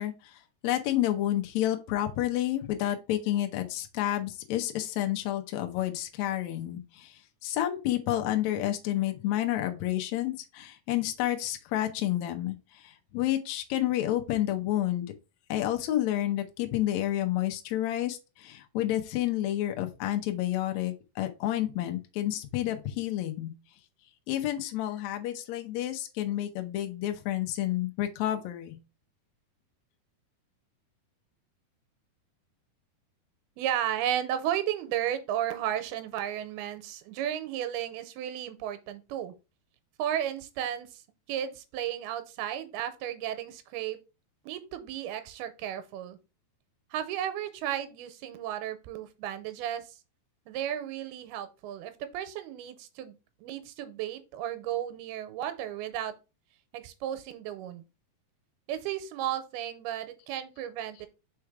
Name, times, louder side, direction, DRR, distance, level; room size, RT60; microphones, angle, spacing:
voice 1, 0.0-15.1 15.5-23.5 24.3-28.8, left 13 dB, 90° left, 1.5 m, -30 dB
voice 2, 33.6-39.3 40.0-41.0 41.3-44.0 44.4-46.2 46.9-50.0 50.5-53.2 53.4-56.2 56.7-57.8 58.7-61.1, right 11 dB, 90° right, 2.6 m, -34 dB
5.1 x 4.5 x 4.7 m
omnidirectional pair, 4.5 m